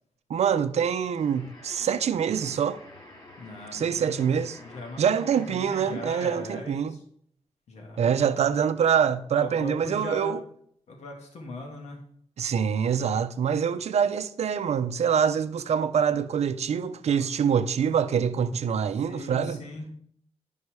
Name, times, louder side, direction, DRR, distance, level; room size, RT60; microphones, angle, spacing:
voice 1, 0.3-2.8 3.7-4.6 5.0-7.0 8.0-10.4 12.4-19.6, right 7 dB, 75° right, 0.6 m, -25 dB
sound 1, 1.1-6.6, left 1 dB, 35° left, 2.6 m, -49 dB
voice 2, 3.4-4.3 4.6-5.0 5.3-6.9 7.7-8.2 9.3-10.3 10.9-12.0 17.1-17.3 19.1-19.9, left 2 dB, 85° left, 1.8 m, -39 dB
11.0 x 5.5 x 4.8 m
wide cardioid pair, 105°, 11 cm